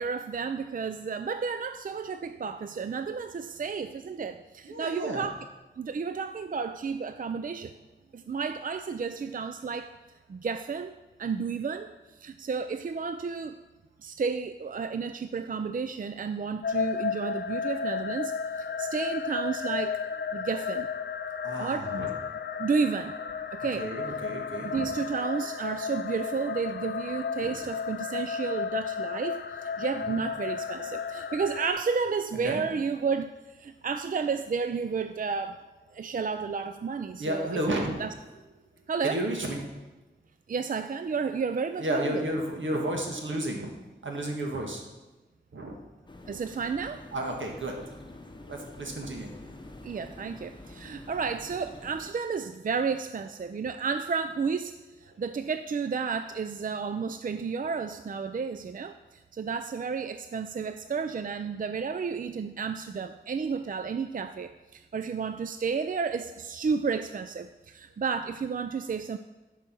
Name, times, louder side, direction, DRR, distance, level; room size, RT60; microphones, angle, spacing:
voice 1, 0.0-5.4 5.8-7.7 8.1-9.9 10.3-11.9 12.2-13.6 14.0-18.3 18.6-20.0 20.3-20.9 21.6-22.0 22.6-23.1 23.5-23.9 24.6-35.6 35.9-38.1 38.9-39.2 40.5-42.2 46.3-47.0 49.8-69.2, right 5 dB, 45° right, 9 dB, 0.4 m, -32 dB
voice 2, 4.6-5.2 8.0-8.1 21.4-22.1 23.8-24.9 27.4-27.6 29.9-30.2 30.8-31.1 32.3-32.6 37.2-38.0 39.0-39.6 41.8-43.7 44.0-44.8 45.5-45.8 47.1-48.1 48.5-49.3 55.1-55.2, right 1 dB, 80° right, 1 dB, 1.7 m, -32 dB
sound 1, 16.6-31.7, left 6 dB, 65° left, 0.5 m, -33 dB
sound 2, 46.1-52.1, left 2 dB, 25° left, 0.9 m, -47 dB
9.7 x 5.0 x 6.1 m, 1.1 s
wide cardioid pair, 65°, 19 cm